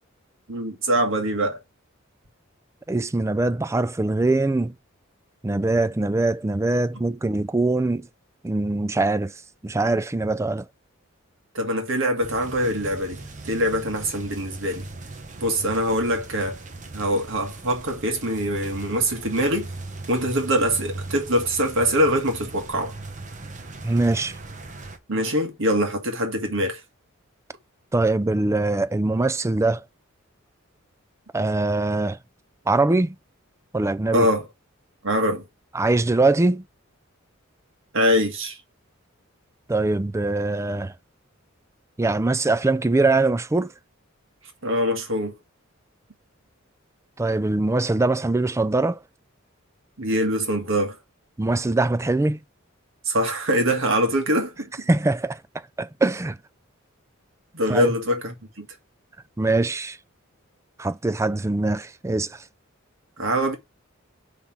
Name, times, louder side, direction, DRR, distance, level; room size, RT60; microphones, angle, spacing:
voice 1, 0.5-1.6 11.5-14.9 15.4-16.6 16.9-19.7 20.1-22.9 25.1-26.8 34.1-34.4 35.0-35.4 37.9-38.6 44.6-45.3 50.0-51.0 53.0-54.9 57.5-58.7 63.2-63.5, equal, 65° right, 1.7 m, -23 dB
voice 2, 2.9-4.7 5.4-8.1 8.4-9.3 9.6-10.7 23.8-24.4 27.9-29.8 31.3-32.2 32.7-33.2 33.7-34.3 35.7-36.6 39.7-40.9 42.0-43.7 47.2-49.0 51.4-52.4 54.9-55.4 55.8-56.4 57.7-57.9 59.4-60.0 60.8-62.4, right 2 dB, 15° right, 0.4 m, -22 dB
sound 1, 12.2-25.0, right 2 dB, 35° right, 1.0 m, -39 dB
5.5 x 3.5 x 5.8 m
head